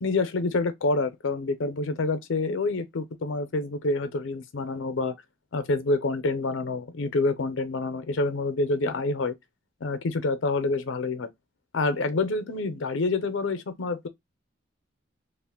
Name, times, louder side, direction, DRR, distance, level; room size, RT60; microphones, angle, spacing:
voice 1, 0.0-5.1 5.5-9.4 9.8-11.3 11.7-14.1, left 3 dB, 80° left, 0.5 m, -27 dB
2.4 x 2.1 x 3.4 m
head